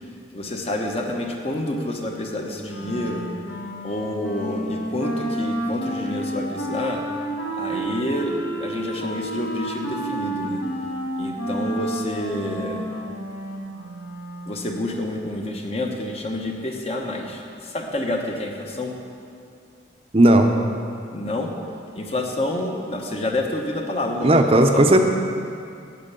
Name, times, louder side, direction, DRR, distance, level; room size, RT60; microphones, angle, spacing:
voice 1, 0.3-3.3 3.8-7.0 7.6-10.6 11.2-12.9 14.5-18.9 21.1-21.5 22.0-25.0, left 1 dB, 30° left, 2 dB, 1.0 m, -28 dB
Wind instrument woodwind instrument, 2.6-14.7, right 1 dB, 75° left, 1.8 m, -30 dB
voice 2, 20.1-20.6 24.2-25.0, right 1 dB, 30° right, 4 dB, 0.6 m, -15 dB
8.9 x 8.2 x 6.8 m, 2.4 s
head